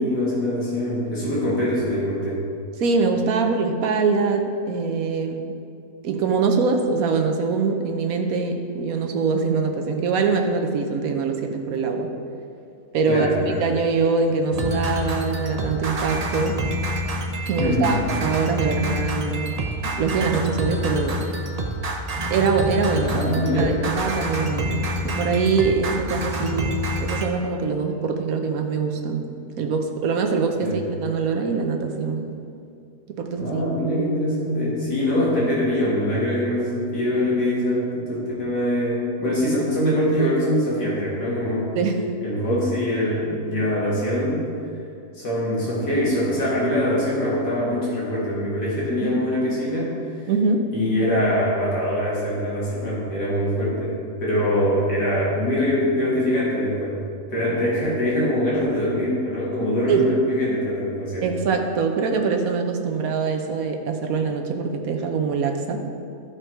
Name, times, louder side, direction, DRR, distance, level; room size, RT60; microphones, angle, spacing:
voice 1, 0.0-2.4 13.1-13.7 17.6-18.0 23.0-23.8 30.6-30.8 33.4-41.7 42.2-44.4 45.1-49.9 50.7-57.0 57.3-61.3, equal, 80° left, -7 dB, 2.6 m, -23 dB
voice 2, 2.8-5.4 6.0-12.1 12.9-16.6 17.5-19.5 19.8-21.2 22.3-23.2 23.6-26.7 27.0-29.2 29.6-32.2 33.1-33.6 41.7-42.0 49.0-49.1 50.3-50.7 59.9-60.1 61.2-65.8, right 4 dB, 65° right, 4 dB, 1.2 m, -23 dB
sound 1, 14.5-27.3, equal, 85° right, 0.3 m, -27 dB
13.5 x 4.8 x 4.5 m, 2.5 s
omnidirectional pair, 1.8 m